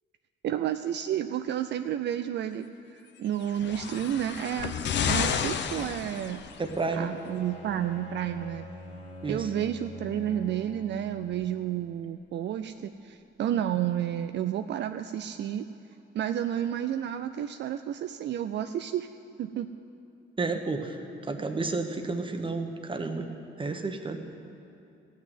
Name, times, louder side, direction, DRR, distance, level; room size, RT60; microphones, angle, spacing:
voice 1, 0.4-4.7 5.0-6.4 6.9-8.7 9.3-15.7 16.1-19.1 19.4-19.7, right 10 dB, 65° right, 9 dB, 0.4 m, -31 dB
sound 1, 3.4-6.8 7.7-7.8, left 7 dB, 65° left, 0.8 m, -31 dB
Bowed string instrument, 6.6-12.0, left 1 dB, 30° left, 2.5 m, -45 dB
voice 2, 6.6-7.1 9.2-9.5 20.4-21.0 21.3-23.3 23.6-24.2, right 3 dB, 25° right, 5 dB, 1.2 m, -31 dB
15.0 x 6.3 x 9.3 m, 2.7 s
cardioid pair, 90°, 20 cm